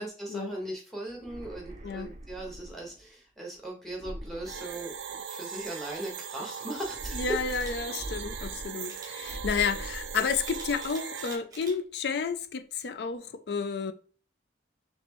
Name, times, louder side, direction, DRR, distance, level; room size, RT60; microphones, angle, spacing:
voice 1, 0.0-7.4, right 1 dB, ahead, 1.1 m, -38 dB
sound 1, 1.1-3.0 3.9-5.4 6.8-8.9 9.2-10.9, right 1 dB, 40° right, 0.6 m, -42 dB
sound 2, 4.4-11.4, right 7 dB, 85° right, 0.4 m, -39 dB
voice 2, 7.1-13.9, left 5 dB, 60° left, 0.4 m, -31 dB
Camera, 7.5-7.7 8.9-9.1 10.4-11.8 12.3-12.5, right 3 dB, 20° right, 0.9 m, -46 dB
4.3 x 3.1 x 3.0 m
head